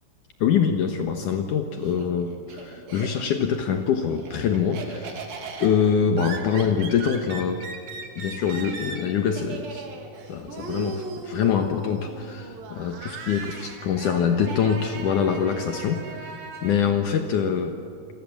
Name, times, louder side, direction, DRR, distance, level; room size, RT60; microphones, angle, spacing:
voice 1, 0.4-5.2 5.6-7.7 8.2-9.9 10.3-17.8, left 7 dB, 85° left, 5 dB, 1.8 m, -24 dB
Laughter, 1.3-3.5 3.8-16.7, right 4 dB, 50° right, 4.0 m, -38 dB
29.0 x 24.0 x 7.5 m, 2.6 s
omnidirectional pair, 5.7 m